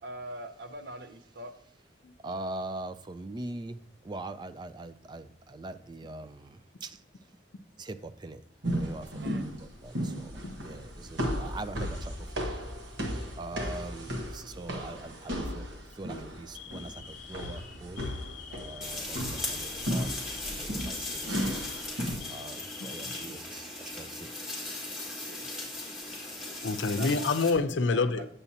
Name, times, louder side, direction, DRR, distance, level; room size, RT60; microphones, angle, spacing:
voice 1, 0.0-1.5 9.2-9.4 25.2-25.8 27.0-27.2 27.9-28.3, right 1 dB, 60° right, 0.7 m, -43 dB
voice 2, 2.2-7.0 7.8-8.4 8.7-12.5 12.9-15.7 15.9-18.1 18.5-21.6 22.3-24.5, right 2 dB, 25° right, 0.3 m, -42 dB
sound 1, 8.6-22.2, equal, 80° right, 1.2 m, -35 dB
Alarm, 13.9-14.2 15.0-15.3 15.8-16.0 16.5-24.1 24.4-24.5 25.4-26.1, left 9 dB, 45° left, 0.8 m, -48 dB
sound 2, 18.8-27.5, left 2 dB, 5° right, 1.7 m, -38 dB
voice 3, 26.5-28.3, left 3 dB, 85° left, 0.6 m, -27 dB
8.5 x 6.8 x 2.8 m
head